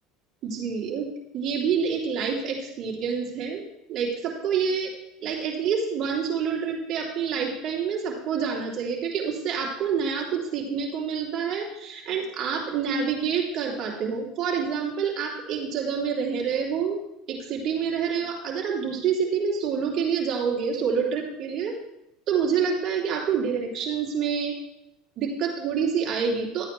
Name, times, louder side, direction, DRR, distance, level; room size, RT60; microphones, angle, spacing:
voice 1, 0.4-1.1 1.3-4.9 5.2-17.0 17.3-21.7 22.3-24.5 25.2-26.7, right 6 dB, 50° right, -2 dB, 3.1 m, -27 dB
12.5 x 8.8 x 3.3 m, 0.82 s
hypercardioid pair, 90°, 0 cm